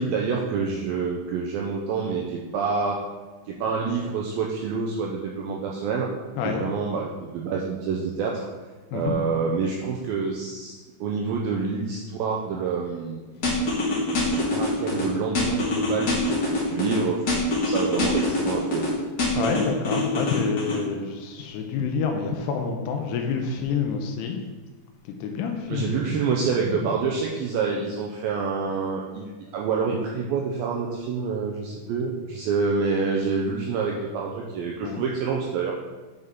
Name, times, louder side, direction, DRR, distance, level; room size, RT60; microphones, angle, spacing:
voice 1, 0.0-3.0 3.5-6.1 6.4-8.5 8.9-13.2 14.2-18.8 25.7-35.7, right 5 dB, 85° right, -1 dB, 2.1 m, -27 dB
voice 2, 13.4-13.7 19.3-24.5 25.1-26.3 26.6-27.0 27.8-27.9 34.8-35.0, left 5 dB, 80° left, 3 dB, 2.5 m, -28 dB
sound 1, 13.4-15.0 15.3-17.0 17.3-18.9 19.2-20.8, left 2 dB, 65° left, 0.9 m, -24 dB
9.4 x 5.3 x 3.6 m, 1.3 s
omnidirectional pair, 4.9 m